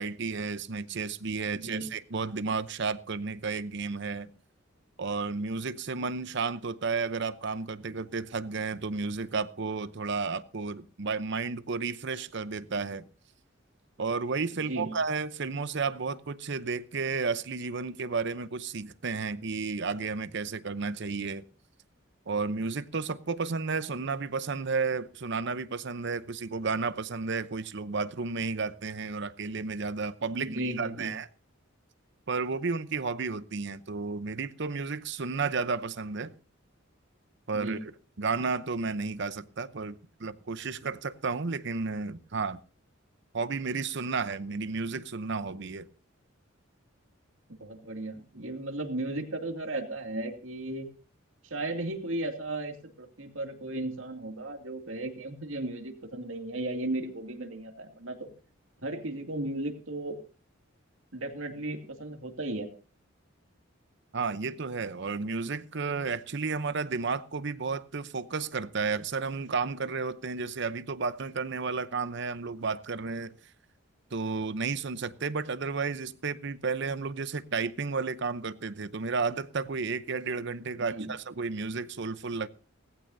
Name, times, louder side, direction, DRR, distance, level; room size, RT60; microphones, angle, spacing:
voice 1, 0.0-4.3 5.0-13.0 14.0-21.4 22.3-31.3 32.3-36.3 37.5-37.8 38.2-42.6 43.3-45.9 64.1-73.3 74.1-82.5, right 4 dB, 60° right, 0.7 m, -32 dB
voice 2, 1.5-1.9 14.7-14.9 30.4-31.1 37.5-37.8 47.5-50.9 51.4-58.3 58.8-60.2 61.1-62.7 80.8-81.1, right 2 dB, 75° right, 2.4 m, -35 dB
18.5 x 15.5 x 2.7 m
head